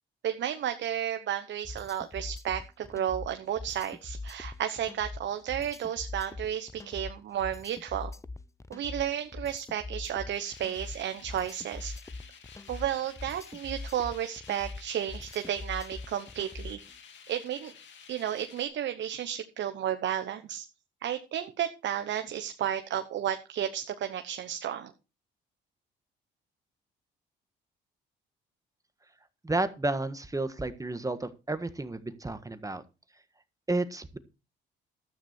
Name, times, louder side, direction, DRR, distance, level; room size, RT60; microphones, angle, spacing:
voice 1, 0.2-8.1 8.7-11.9 12.7-16.8 17.3-17.7 18.1-20.7 21.0-24.9, right 10 dB, 65° right, 7 dB, 1.1 m, -32 dB
sound 1, 1.6-16.9, left 3 dB, 15° left, 0.7 m, -42 dB
sound 2, 10.3-18.7, left 7 dB, 65° left, 2.4 m, -52 dB
voice 2, 29.4-32.8 33.7-34.2, right 2 dB, 15° right, 10 dB, 1.5 m, -31 dB
13.0 x 8.8 x 4.5 m, 0.30 s
supercardioid pair, 70°, 20 cm